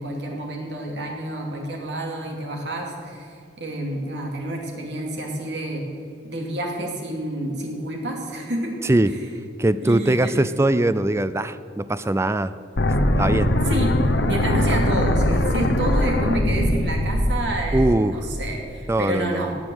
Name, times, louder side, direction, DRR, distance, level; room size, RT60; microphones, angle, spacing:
voice 1, 0.0-5.9 6.2-8.7 9.1-9.2 9.8-10.3 13.6-14.0 14.2-19.6, right 1 dB, 65° right, 0 dB, 2.7 m, -29 dB
voice 2, 9.6-12.6 13.2-13.5 17.7-18.3 18.9-19.5, right 1 dB, 15° right, 14 dB, 0.4 m, -21 dB
sound 1, 12.8-18.7, left 1 dB, 70° left, 1.0 m, -21 dB
18.0 x 6.8 x 7.9 m, 2.5 s
head